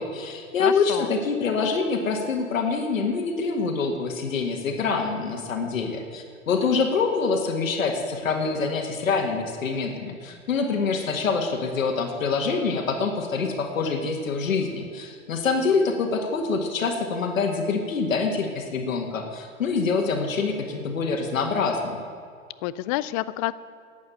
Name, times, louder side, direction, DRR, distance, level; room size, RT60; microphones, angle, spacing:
voice 1, 0.0-22.0, left 4 dB, 85° left, 2 dB, 1.8 m, -25 dB
voice 2, 0.6-1.1 22.6-23.5, left 17 dB, 30° left, 17 dB, 0.3 m, -28 dB
11.0 x 8.5 x 9.1 m, 2.2 s
hypercardioid pair, 120°, 39 cm